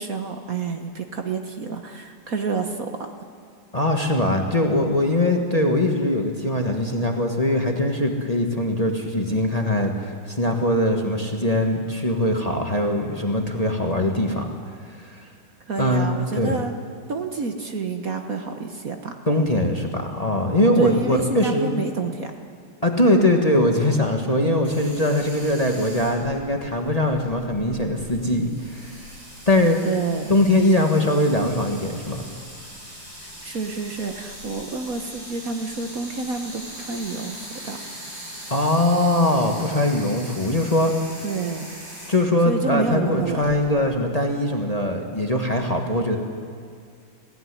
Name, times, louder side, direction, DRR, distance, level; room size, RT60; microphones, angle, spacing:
voice 1, 0.0-3.1 15.7-16.7 17.1-19.1 20.8-22.3 29.8-30.3 33.2-37.4 37.6-37.8 41.2-41.6 42.5-43.5, right 4 dB, 50° right, 5 dB, 1.4 m, -29 dB
voice 2, 3.7-14.5 14.8-15.3 15.8-16.6 19.3-21.8 22.8-29.0 29.5-29.8 30.3-32.3 38.5-40.9 42.1-46.2, left 1 dB, 20° left, 2 dB, 1.4 m, -21 dB
sound 1, 24.6-43.6, equal, 75° right, 7.5 m, -41 dB
20.0 x 16.0 x 9.8 m, 2.2 s
omnidirectional pair, 2.1 m